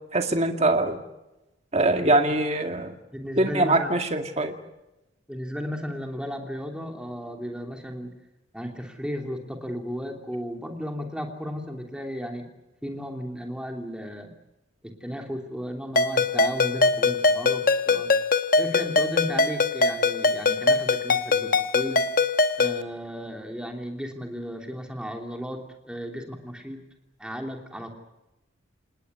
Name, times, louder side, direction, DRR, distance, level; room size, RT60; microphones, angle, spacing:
voice 1, 0.1-1.0 1.7-2.9 3.4-4.5, right 2 dB, 30° right, 5 dB, 2.2 m, -23 dB
voice 2, 3.1-4.0 5.3-8.1 8.5-12.5 12.8-14.3 14.8-18.1 18.6-22.0 22.6-26.8 27.2-27.9, equal, 5° right, 3 dB, 3.0 m, -34 dB
Ringtone, 16.0-22.8, left 3 dB, 45° left, 1.1 m, -22 dB
27.5 x 19.5 x 8.1 m, 0.98 s
head